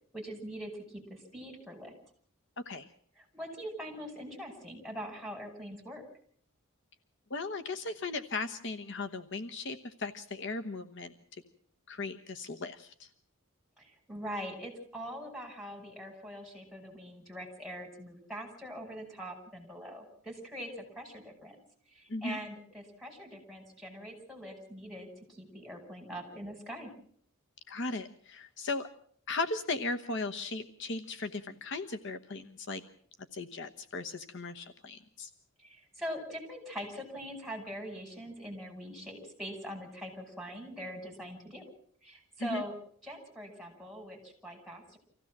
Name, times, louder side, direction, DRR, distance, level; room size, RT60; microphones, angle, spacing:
voice 1, 0.1-1.9 3.2-6.0 13.8-21.6 21.9-26.9 35.6-41.6 42.0-42.8 43.0-45.0, equal, ahead, 1 dB, 5.9 m, -43 dB
voice 2, 7.3-11.4 11.9-13.1 22.1-22.4 27.7-28.9 29.3-32.8 33.3-35.3 42.4-42.6, left 3 dB, 55° left, 8 dB, 1.1 m, -37 dB
26.0 x 16.0 x 7.4 m, 0.62 s
head